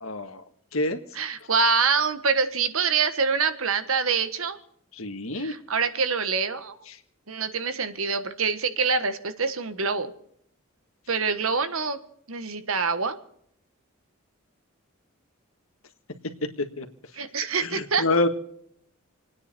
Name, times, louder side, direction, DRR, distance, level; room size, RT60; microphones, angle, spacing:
voice 1, 0.0-0.4 0.7-1.0 4.9-5.5 16.8-16.9 17.6-18.3, left 2 dB, 75° left, 7 dB, 1.7 m, -26 dB
voice 2, 1.1-4.6 5.3-6.8 7.3-10.1 11.1-12.0 12.3-13.2 17.1-18.0, right 5 dB, 75° right, 11 dB, 1.4 m, -25 dB
28.0 x 9.7 x 4.4 m, 0.69 s
head